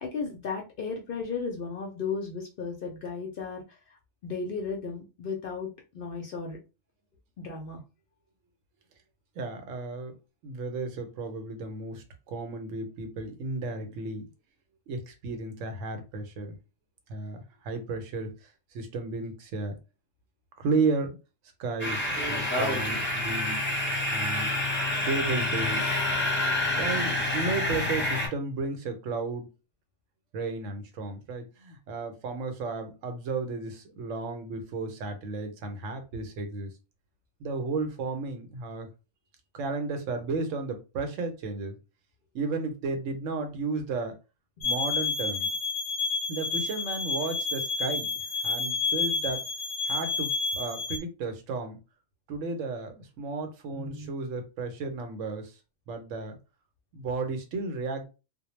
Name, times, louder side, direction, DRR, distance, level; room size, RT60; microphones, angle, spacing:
voice 1, 0.0-4.0 4.2-6.6 7.4-7.8 53.7-54.1, left 5 dB, 60° left, 2 dB, 0.6 m, -35 dB
voice 2, 9.4-10.2 10.4-14.3 14.9-16.5 17.1-19.8 20.6-21.2 21.6-23.6 23.9-24.5 25.1-26.0 26.7-29.5 30.3-36.7 37.4-38.9 39.5-41.8 42.3-44.2 44.6-45.5 46.3-48.1 48.4-49.4 49.9-51.8 52.3-55.5 55.9-56.4 56.9-58.1, right 3 dB, 85° right, 7 dB, 1.0 m, -33 dB
sound 1, 21.8-28.3, left 1 dB, 10° left, 0.6 m, -28 dB
sound 2, 44.6-51.0, left 4 dB, 85° left, 1.0 m, -30 dB
2.2 x 2.1 x 3.0 m, 0.30 s
omnidirectional pair, 1.3 m